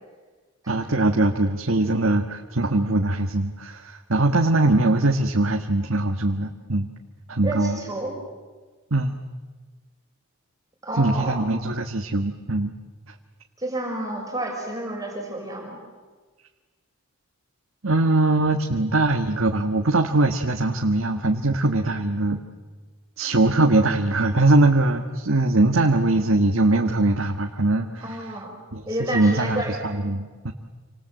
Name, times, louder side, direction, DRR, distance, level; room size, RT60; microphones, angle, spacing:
voice 1, 0.7-6.9 7.3-7.8 8.9-9.2 11.0-12.7 17.8-22.4 23.2-28.2 28.7-30.5, right 2 dB, 70° right, 3 dB, 1.6 m, -21 dB
voice 2, 7.4-8.1 10.8-11.4 13.6-15.8 28.0-28.6 28.9-29.8, right 1 dB, 15° right, -1 dB, 6.3 m, -30 dB
28.5 x 26.0 x 7.8 m, 1.3 s
head